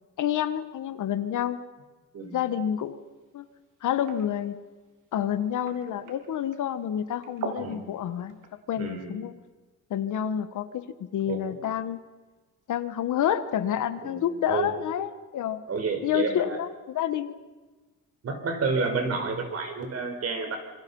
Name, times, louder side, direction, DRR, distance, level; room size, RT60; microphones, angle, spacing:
voice 1, 0.2-1.6 2.3-3.0 3.3-3.5 3.8-4.6 5.1-8.3 8.7-9.3 9.9-10.8 11.1-12.0 12.7-15.6 16.0-17.4, left 10 dB, 70° left, 11 dB, 1.6 m, -28 dB
sound 1, 2.2-8.6, right 5 dB, 80° right, 3.7 m, -44 dB
voice 2, 8.7-9.1 11.3-11.5 14.0-14.2 14.5-14.7 15.7-16.6 18.2-20.6, right 4 dB, 50° right, 5 dB, 4.8 m, -30 dB
26.5 x 25.0 x 5.6 m, 1.3 s
cardioid pair, 135°, 31 cm